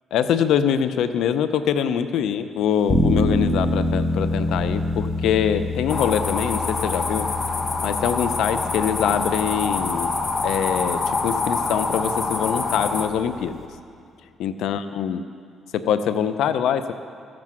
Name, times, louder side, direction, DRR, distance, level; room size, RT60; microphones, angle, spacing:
voice 1, 0.1-7.3 7.8-10.1 10.4-13.7 14.4-15.2 15.7-16.9, left 8 dB, 80° left, 11 dB, 0.5 m, -24 dB
sound 1, 2.9-13.6, left 2 dB, 10° left, 1.3 m, -27 dB
sound 2, 5.9-13.1, left 3 dB, 40° left, 1.0 m, -26 dB
14.5 x 7.5 x 6.1 m, 2.3 s
cardioid pair, 90°, 0 cm